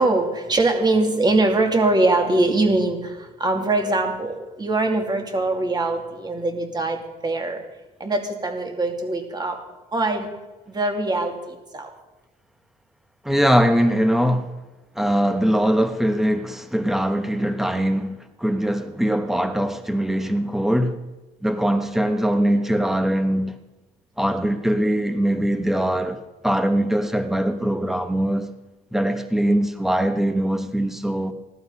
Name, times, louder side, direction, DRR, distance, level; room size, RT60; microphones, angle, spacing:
voice 1, 0.0-7.6 8.0-9.6 9.9-10.3 10.7-11.9 29.4-29.5, right 2 dB, 25° right, 2.5 m, -22 dB
voice 2, 13.2-14.5 14.9-21.0 21.4-23.6 24.2-28.5 28.9-31.3, equal, ahead, 1.3 m, -22 dB
17.0 x 12.0 x 5.5 m
cardioid pair, 110°, 17 cm